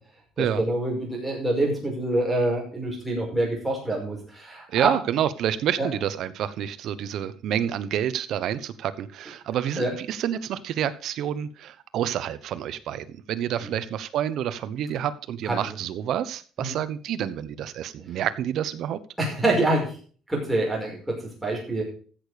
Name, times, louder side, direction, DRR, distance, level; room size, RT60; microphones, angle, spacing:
voice 1, 0.4-4.9 5.8-5.9 9.8-9.9 13.6-13.7 15.5-15.7 16.6-16.8 19.2-19.9 20.3-21.8, right 2 dB, 5° right, -2 dB, 5.2 m, -26 dB
voice 2, 4.7-19.0, right 10 dB, 55° right, 13 dB, 0.9 m, -28 dB
15.0 x 6.7 x 5.0 m, 0.41 s
cardioid pair, 155°, 0 cm